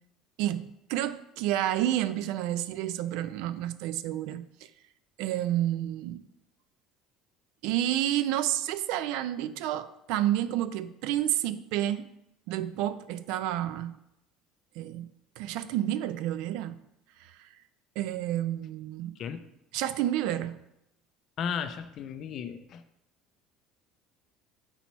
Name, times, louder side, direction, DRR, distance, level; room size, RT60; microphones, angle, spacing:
voice 1, 0.4-4.7 5.2-6.2 7.6-12.1 12.5-14.0 14.8-15.1 15.4-16.8 17.2-17.5 18.0-19.1 19.7-20.6, right 12 dB, 70° right, 14 dB, 0.3 m, -30 dB
voice 2, 21.4-22.8, left 7 dB, 40° left, 10 dB, 0.4 m, -35 dB
5.9 x 4.1 x 4.3 m, 0.84 s
cardioid pair, 160°, 0 cm